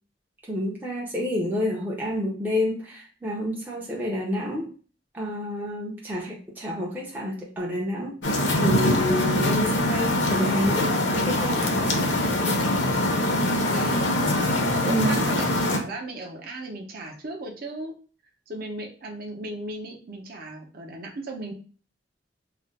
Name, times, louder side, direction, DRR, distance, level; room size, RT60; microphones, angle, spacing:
voice 1, 0.5-4.7 5.1-8.2 8.6-11.6 14.8-15.3, equal, 10° right, -3 dB, 0.4 m, -29 dB
sound 1, 8.2-15.8, left 1 dB, 70° left, 0.6 m, -23 dB
voice 2, 13.3-14.1 14.8-17.9 18.5-21.5, right 2 dB, 55° right, 0 dB, 0.6 m, -36 dB
2.4 x 2.1 x 3.9 m, 0.39 s
head